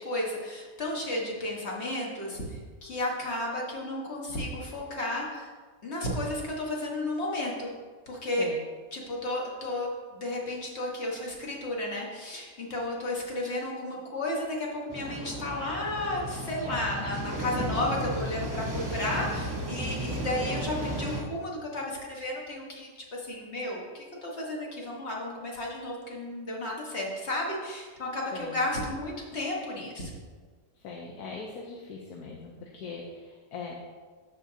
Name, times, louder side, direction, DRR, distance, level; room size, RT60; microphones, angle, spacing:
voice 1, 0.0-5.5 5.8-7.7 8.1-8.5 8.9-30.2, left 1 dB, 45° left, -3 dB, 1.6 m, -33 dB
sound 1, 14.9-21.2, right 1 dB, 15° right, 0.7 m, -34 dB
voice 2, 30.8-33.7, left 4 dB, 85° left, -1 dB, 1.3 m, -40 dB
13.5 x 4.9 x 2.8 m, 1.5 s
omnidirectional pair, 1.6 m